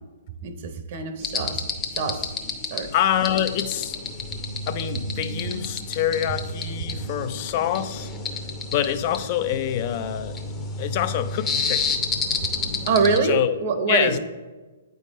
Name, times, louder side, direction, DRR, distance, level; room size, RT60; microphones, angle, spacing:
voice 1, 0.4-1.6 2.0-2.3 2.7-2.9 12.9-14.2, right 4 dB, 50° right, 7 dB, 0.7 m, -24 dB
sound 1, 1.2-13.2, left 3 dB, 20° left, 0.7 m, -30 dB
voice 2, 2.9-4.0 4.7-8.1 8.7-10.4 10.8-12.0 13.2-13.6 13.9-14.2, left 11 dB, 45° left, 12 dB, 0.4 m, -25 dB
8.2 x 3.5 x 4.1 m, 1.3 s
hypercardioid pair, 135°, 0 cm